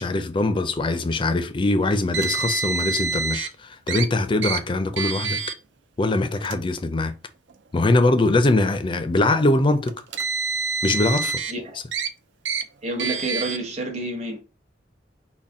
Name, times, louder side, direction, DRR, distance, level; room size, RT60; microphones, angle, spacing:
voice 1, 0.0-5.4 6.0-7.1 7.7-10.0 10.8-11.4, left 2 dB, 30° left, 0.4 m, -22 dB
Car, 2.1-3.5 3.9-4.1 4.4-4.6 5.0-5.5 6.4-6.6 7.5-7.6 9.9-11.5 11.9-12.1 12.5-12.6 13.0-13.6, right 4 dB, 90° right, 0.5 m, -27 dB
voice 2, 12.8-14.4, right 2 dB, 40° right, 1.0 m, -29 dB
4.1 x 2.1 x 3.5 m
head